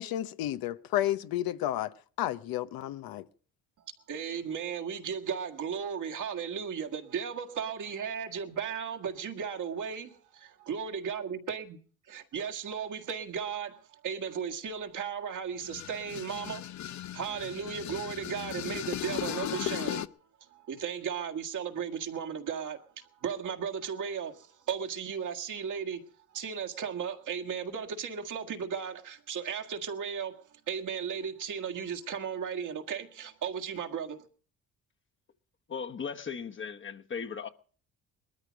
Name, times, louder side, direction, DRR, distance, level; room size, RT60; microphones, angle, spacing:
voice 1, 0.0-3.2, left 13 dB, 85° left, 0.9 m, -32 dB
voice 2, 4.1-11.8 12.1-16.7 17.1-20.1 20.5-26.1 26.3-34.3, right 7 dB, 60° right, 1.8 m, -35 dB
sound 1, 15.6-20.1, left 12 dB, 55° left, 0.7 m, -37 dB
voice 3, 35.7-37.5, left 6 dB, 35° left, 1.2 m, -37 dB
20.0 x 13.5 x 5.2 m
cardioid pair, 100°, 35 cm